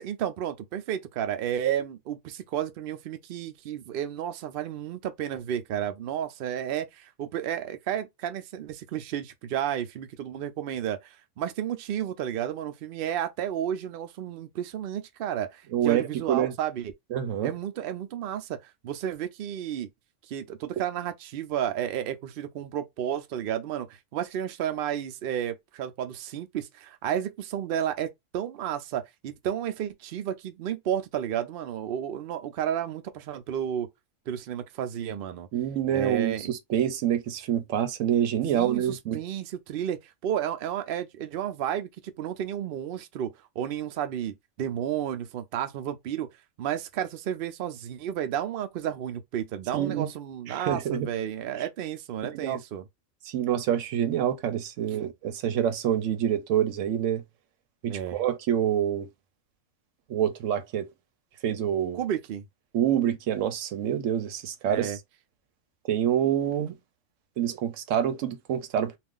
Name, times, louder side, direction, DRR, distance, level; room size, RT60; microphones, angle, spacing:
voice 1, 0.0-16.9 17.4-19.9 20.3-33.9 34.3-35.5 35.9-36.5 38.5-46.3 46.6-52.9 54.9-55.1 57.9-58.2 61.9-62.4 64.7-65.0, right 10 dB, 60° right, 0.6 m, -32 dB
voice 2, 15.7-16.5 17.1-17.5 35.5-39.2 49.7-50.1 50.5-51.1 52.2-52.6 53.3-57.2 57.8-59.1 60.1-60.9 61.4-62.0 62.7-64.9 65.9-66.8 67.4-69.0, right 10 dB, 85° right, 1.0 m, -27 dB
2.4 x 2.4 x 3.5 m
omnidirectional pair, 1.3 m